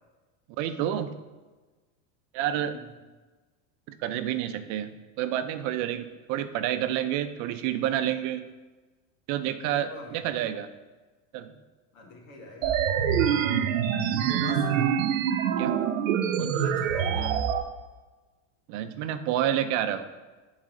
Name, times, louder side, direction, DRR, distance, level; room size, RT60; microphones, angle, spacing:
voice 1, 0.6-1.1 2.3-2.8 3.9-4.9 5.2-8.4 9.3-10.7 11.3-11.5 13.3-13.7 15.6-15.7 16.4-16.6 18.7-20.0, right 11 dB, 50° right, 10 dB, 0.5 m, -29 dB
voice 2, 2.4-2.9 9.8-10.2 11.9-13.7 14.3-14.8 16.5-17.5, left 2 dB, 90° left, 0 dB, 1.8 m, -43 dB
sound 1, 12.6-17.6, right 8 dB, 85° right, 0.7 m, -25 dB
8.8 x 4.0 x 3.8 m, 1.3 s
supercardioid pair, 120°, 38 cm